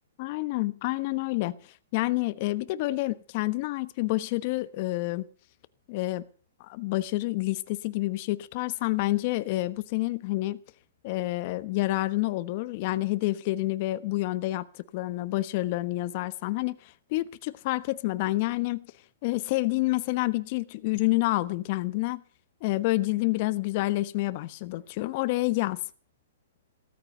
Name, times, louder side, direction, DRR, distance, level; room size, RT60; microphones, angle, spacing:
voice 1, 0.2-1.6 1.9-5.3 5.9-6.2 6.6-10.6 11.0-14.7 14.9-18.9 19.2-22.2 22.6-25.8, left 19 dB, 45° left, 1.1 m, -28 dB
16.0 x 14.0 x 5.5 m
hypercardioid pair, 130°, 0 cm